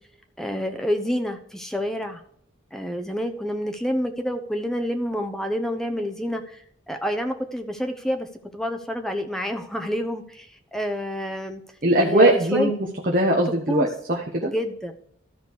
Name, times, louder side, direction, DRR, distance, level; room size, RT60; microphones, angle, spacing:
voice 1, 0.4-2.2 2.7-8.3 8.5-11.6 12.0-12.7 13.7-13.9 14.4-14.9, equal, ahead, 5 dB, 0.8 m, -28 dB
voice 2, 11.8-12.7 13.1-14.5, right 1 dB, 45° right, -1 dB, 1.2 m, -20 dB
13.5 x 5.1 x 4.7 m, 0.66 s
head